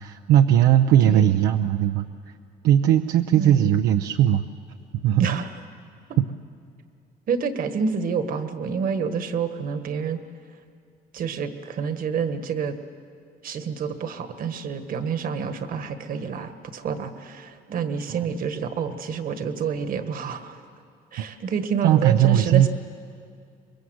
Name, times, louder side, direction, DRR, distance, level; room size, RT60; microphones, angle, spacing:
voice 1, 0.0-2.0 2.6-4.4 5.0-5.3 6.2-6.3 18.1-18.2 21.8-22.7, right 11 dB, 80° right, 6 dB, 0.7 m, -18 dB
voice 2, 1.0-1.4 3.3-3.8 5.2-5.5 7.3-10.2 11.1-12.7 13.4-20.6 21.1-22.7, right 6 dB, 55° right, 9 dB, 1.6 m, -28 dB
24.0 x 21.5 x 8.0 m, 2.3 s
cardioid pair, 110°, 17 cm